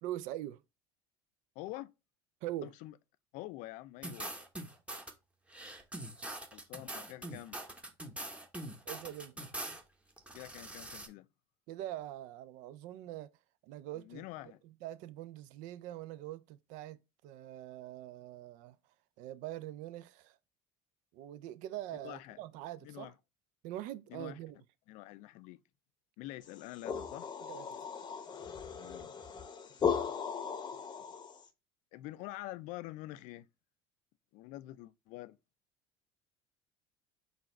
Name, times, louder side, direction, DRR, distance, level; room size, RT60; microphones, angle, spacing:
voice 1, 0.0-0.6 2.4-2.7 8.9-9.5 11.7-13.3 13.6-14.3 14.6-18.8 19.2-20.4 21.1-23.1 23.6-24.6 27.5-27.8, right 13 dB, 65° right, 0.4 m, -43 dB
voice 2, 1.6-1.9 2.6-2.9 3.3-4.3 6.5-7.6 10.3-11.3 13.9-14.6 22.0-22.4 22.8-23.1 24.1-24.4 24.9-25.6 26.2-27.3 28.7-29.1 31.9-33.5 34.3-35.4, left 17 dB, 60° left, 0.4 m, -46 dB
sound 1, 4.0-5.1 5.5-9.8 10.2-11.1, right 1 dB, 10° right, 0.9 m, -43 dB
sound 2, 26.5-31.5, left 6 dB, 30° left, 0.7 m, -37 dB
4.0 x 2.4 x 4.2 m
hypercardioid pair, 80°, 14 cm